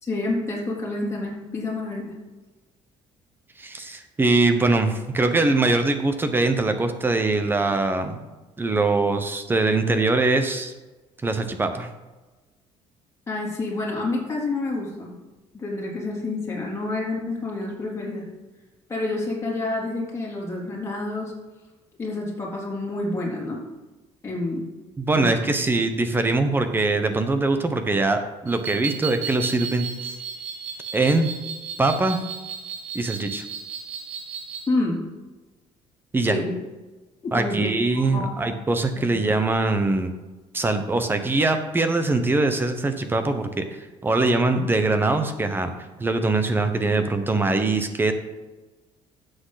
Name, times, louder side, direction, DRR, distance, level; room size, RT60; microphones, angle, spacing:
voice 1, 0.1-2.1 13.3-15.1 15.5-18.2 18.9-21.3 22.0-23.6 24.2-24.6 25.1-25.3 34.7-35.0 36.3-36.5 37.2-37.7 37.9-38.3 38.9-39.1, left 2 dB, 25° left, -4 dB, 3.5 m, -28 dB
voice 2, 3.6-8.2 8.6-10.7 11.2-11.9 25.0-30.2 30.9-31.3 31.8-32.2 32.9-33.4 36.1-36.4 37.3-40.1 40.5-45.7 46.0-48.1, right 2 dB, 15° right, 8 dB, 1.1 m, -22 dB
sound 1, 28.5-34.7, right 7 dB, 70° right, 1.5 m, -35 dB
12.5 x 8.0 x 4.1 m, 1.2 s
cardioid pair, 130°, 12 cm